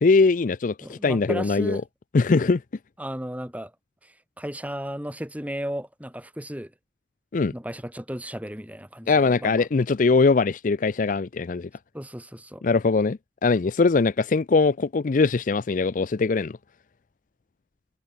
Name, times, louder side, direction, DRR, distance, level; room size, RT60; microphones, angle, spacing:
voice 1, 0.0-1.8 2.1-2.6 7.3-7.5 9.1-11.7 12.6-16.6, left 4 dB, 45° left, 0.5 m, -21 dB
voice 2, 0.8-1.8 3.0-3.7 4.4-6.7 7.5-9.5 11.9-12.6, equal, 10° right, 7.7 m, -34 dB
head